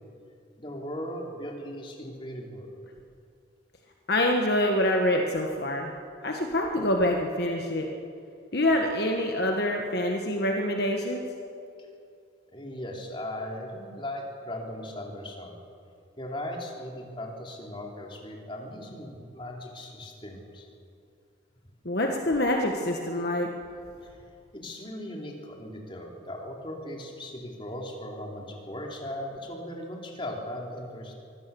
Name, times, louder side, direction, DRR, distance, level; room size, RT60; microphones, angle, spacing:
voice 1, 0.6-2.7 11.8-11.9 12.5-15.6 16.2-20.7 24.0-24.1 24.5-31.1, left 1 dB, 25° left, 0 dB, 3.1 m, -38 dB
voice 2, 4.1-5.9 6.2-7.9 8.5-11.2 21.8-23.5, left 1 dB, 55° left, 2 dB, 1.5 m, -26 dB
24.0 x 16.0 x 7.0 m, 2.5 s
head